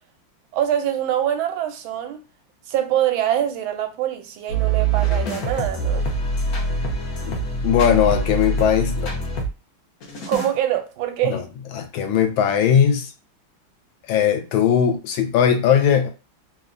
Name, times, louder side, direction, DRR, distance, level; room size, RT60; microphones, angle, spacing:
voice 1, 0.5-2.2 2.7-6.1 10.3-11.4, right 11 dB, 85° right, 1.4 m, -24 dB
sound 1, 4.5-9.5 10.0-10.5, right 3 dB, 65° left, 0.9 m, -24 dB
voice 2, 7.6-9.2 11.3-11.4 11.7-13.1 14.1-16.1, left 8 dB, 80° left, 1.3 m, -19 dB
3.3 x 2.1 x 2.5 m
omnidirectional pair, 2.2 m